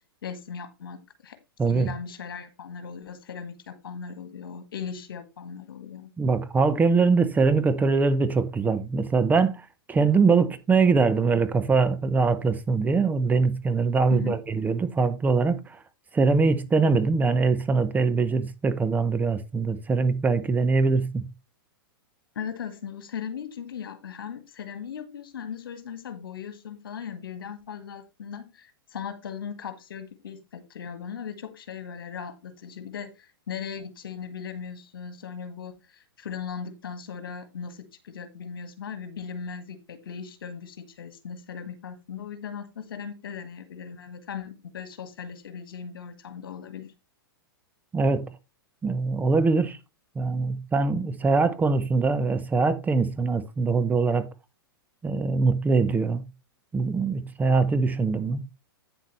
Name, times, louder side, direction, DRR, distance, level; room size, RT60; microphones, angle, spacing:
voice 1, 0.2-1.4 1.7-6.1 14.1-14.4 22.4-46.9, left 7 dB, 65° left, 1.8 m, -38 dB
voice 2, 1.6-1.9 6.2-9.6 9.9-15.8 16.1-21.3 47.9-48.3 48.8-49.8 50.2-54.3 55.0-56.3 56.7-58.5, right 4 dB, 15° right, 0.7 m, -23 dB
9.1 x 7.3 x 3.2 m
figure-of-eight pair, 105°, 12 cm